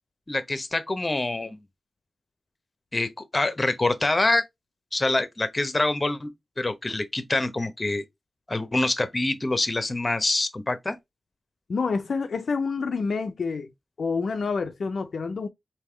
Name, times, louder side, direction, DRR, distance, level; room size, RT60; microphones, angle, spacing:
voice 1, 0.3-1.6 2.9-4.4 4.9-6.3 6.6-8.0 8.5-11.0, left 2 dB, 35° left, 0.8 m, -25 dB
voice 2, 11.7-13.7 14.0-15.5, left 4 dB, 75° left, 0.4 m, -28 dB
3.5 x 2.7 x 3.2 m
cardioid pair, 40°, 0 cm